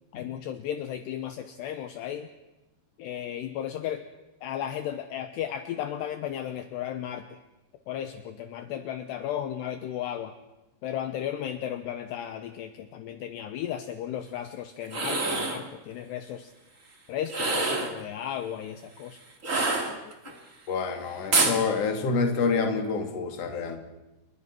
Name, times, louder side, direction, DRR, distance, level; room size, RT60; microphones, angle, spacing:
voice 1, 0.1-2.3 3.0-4.0 4.4-7.2 7.9-10.3 10.8-16.5 17.1-19.2 19.9-20.1, left 10 dB, 75° left, 8 dB, 2.8 m, -34 dB
sound 1, 14.8-15.6 17.3-18.0 19.4-20.3 21.3-21.6, right 3 dB, 30° right, 1.4 m, -26 dB
voice 2, 20.7-23.8, left 4 dB, 40° left, 4 dB, 2.8 m, -27 dB
29.5 x 21.5 x 6.1 m, 1.0 s
omnidirectional pair, 5.6 m